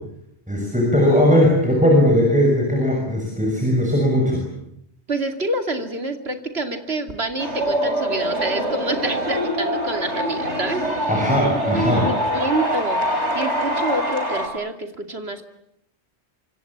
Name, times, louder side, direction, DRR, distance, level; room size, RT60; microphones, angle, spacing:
voice 1, 0.5-4.4 11.1-12.1, equal, 5° right, 0 dB, 6.7 m, -18 dB
voice 2, 5.1-11.1 11.7-13.1 13.3-15.4, right 2 dB, 65° right, 6 dB, 3.0 m, -27 dB
sound 1, 7.4-14.5, equal, 85° right, 4.9 m, -24 dB
26.5 x 25.5 x 8.7 m, 0.77 s
omnidirectional pair, 1.1 m